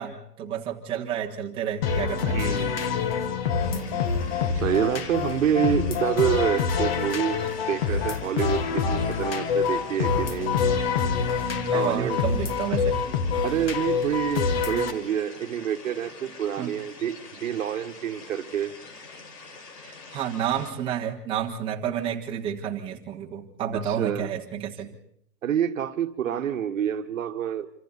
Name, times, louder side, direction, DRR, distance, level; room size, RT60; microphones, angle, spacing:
voice 1, 0.0-2.4 3.7-4.0 4.5-4.6 11.2-13.0 16.6-16.7 19.8-25.0, right 9 dB, 10° right, -2 dB, 1.4 m, -31 dB
sound 1, 1.8-14.9, left 6 dB, 35° left, 1.9 m, -26 dB
voice 2, 2.3-3.0 4.5-7.4 7.7-10.6 11.7-12.2 13.4-18.8 23.7-24.3 25.4-27.7, right 9 dB, 50° right, 8 dB, 1.5 m, -27 dB
sound 2, 3.6-20.7, left 4 dB, 70° left, 5.8 m, -45 dB
27.0 x 26.0 x 4.2 m, 0.69 s
hypercardioid pair, 160°, 49 cm